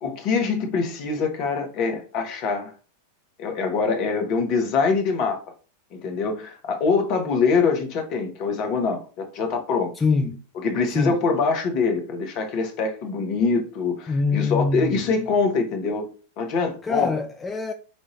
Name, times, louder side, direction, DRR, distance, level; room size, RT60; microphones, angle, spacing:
voice 1, 0.0-2.7 3.4-5.4 5.9-9.9 10.6-16.1 16.4-17.1, left 4 dB, 40° left, 1.0 m, -24 dB
voice 2, 9.9-10.4 10.9-11.2 14.1-15.3 16.8-17.7, left 4 dB, 15° left, 0.4 m, -24 dB
5.2 x 2.5 x 3.1 m
figure-of-eight pair, 90°, 0 cm